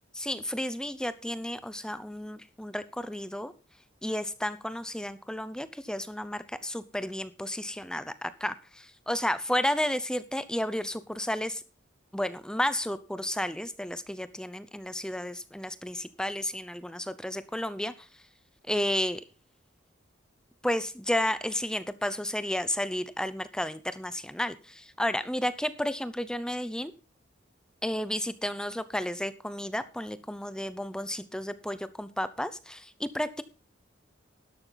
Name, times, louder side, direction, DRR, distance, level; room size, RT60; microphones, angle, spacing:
voice 1, 0.1-3.5 4.0-11.6 12.1-18.1 18.7-19.2 20.6-26.9 27.8-33.4, left 1 dB, 5° left, 14 dB, 0.7 m, -32 dB
12.0 x 12.0 x 4.0 m, 0.35 s
head